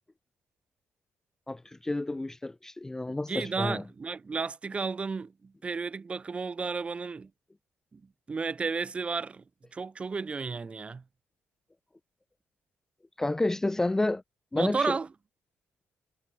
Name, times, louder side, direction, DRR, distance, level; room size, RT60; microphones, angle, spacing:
voice 1, 1.5-3.8 13.2-14.2 14.5-15.0, left 2 dB, 10° left, 0.4 m, -30 dB
voice 2, 3.3-7.3 7.9-8.0 8.3-9.4 9.7-11.0 14.5-15.1, right 4 dB, 25° right, 0.9 m, -33 dB
cardioid pair, 125°, 4 cm